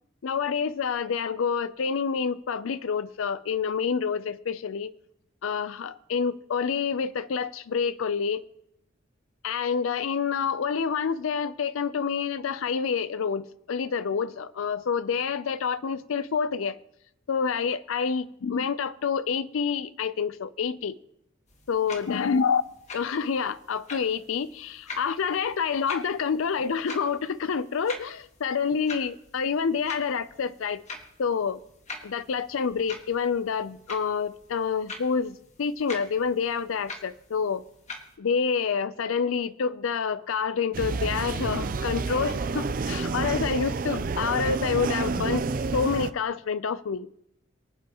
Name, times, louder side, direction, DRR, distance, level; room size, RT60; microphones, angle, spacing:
voice 1, 0.2-4.9 5.4-8.4 9.4-16.8 17.3-21.0 21.7-22.6 22.9-30.8 31.2-31.6 32.0-37.6 38.2-47.1, left 6 dB, 85° left, 0.5 m, -28 dB
sound 1, 21.5-38.2, left 3 dB, 35° left, 1.6 m, -45 dB
sound 2, 40.7-46.1, right 4 dB, 45° right, 0.4 m, -29 dB
24.0 x 8.5 x 2.9 m
head